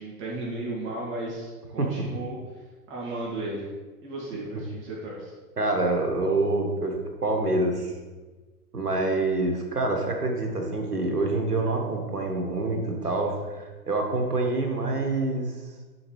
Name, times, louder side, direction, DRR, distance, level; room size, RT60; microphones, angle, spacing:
voice 1, 0.0-3.7 4.0-5.3, right 2 dB, 25° right, -5 dB, 2.2 m, -35 dB
voice 2, 5.6-7.0 7.2-7.9 8.7-15.5, right 2 dB, 80° right, 2 dB, 1.5 m, -26 dB
10.5 x 5.1 x 3.2 m, 1.3 s
figure-of-eight pair, 100°, 46 cm